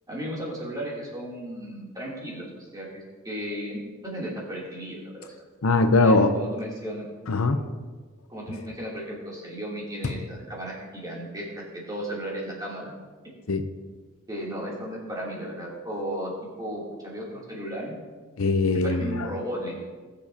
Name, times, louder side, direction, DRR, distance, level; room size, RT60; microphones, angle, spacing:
voice 1, 0.1-5.3 6.0-7.1 8.3-12.9 14.3-16.3 16.6-17.9 18.8-19.8, equal, 15° right, -6 dB, 3.0 m, -35 dB
voice 2, 5.6-6.3 7.3-7.6 13.5-13.6 18.4-19.3, left 3 dB, 75° left, 8 dB, 0.7 m, -21 dB
20.0 x 7.1 x 2.9 m, 1.4 s
head